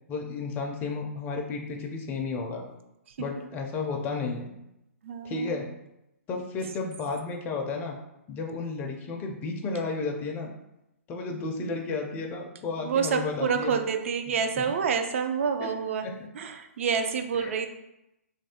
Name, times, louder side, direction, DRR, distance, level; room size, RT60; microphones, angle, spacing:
voice 1, 0.1-2.6 3.2-4.5 5.2-5.7 6.3-8.0 8.3-10.5 11.1-13.7 15.6-15.7 16.0-16.1 17.4-17.6, left 4 dB, 20° left, 2 dB, 0.4 m, -32 dB
voice 2, 5.0-5.6 12.8-16.1 16.3-17.7, right 6 dB, 60° right, 7 dB, 0.4 m, -28 dB
3.0 x 2.5 x 2.8 m, 0.88 s
hypercardioid pair, 135°, 8 cm